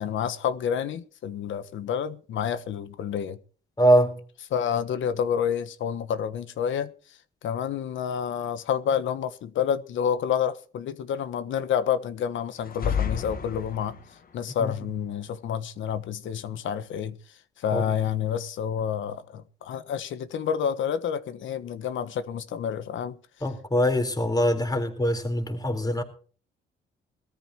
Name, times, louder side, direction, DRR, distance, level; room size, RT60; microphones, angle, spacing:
voice 1, 0.0-3.4 4.5-6.9 7.4-14.0 14.3-17.2 17.6-23.1, left 8 dB, 75° left, 1.3 m, -29 dB
voice 2, 3.8-4.1 14.6-14.7 17.7-17.8 23.4-26.0, equal, 20° left, 4.1 m, -23 dB
sound 1, 12.6-14.2, left 7 dB, 50° left, 2.0 m, -30 dB
21.5 x 13.5 x 3.0 m
cardioid pair, 90°, 20 cm